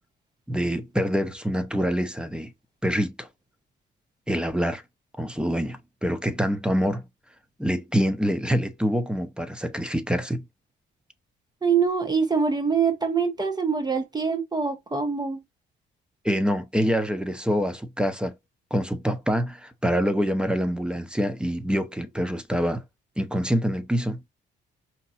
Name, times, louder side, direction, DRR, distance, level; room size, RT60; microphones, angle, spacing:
voice 1, 0.5-2.5 2.8-3.3 4.3-4.8 5.2-7.0 7.6-10.4 16.2-18.3 18.7-22.8 23.2-24.2, equal, 5° right, 0.8 m, -25 dB
voice 2, 11.6-15.4, right 5 dB, 20° right, 1.1 m, -24 dB
5.4 x 2.8 x 2.6 m
cardioid pair, 90°, 20 cm